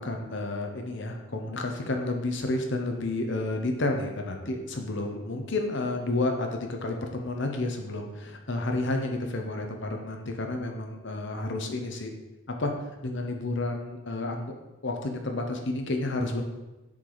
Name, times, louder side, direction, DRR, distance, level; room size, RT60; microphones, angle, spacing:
voice 1, 0.0-12.1 12.5-12.7 13.0-14.5 14.8-16.4, left 2 dB, 55° left, 3 dB, 0.9 m, -30 dB
7.3 x 4.9 x 4.0 m, 1.1 s
head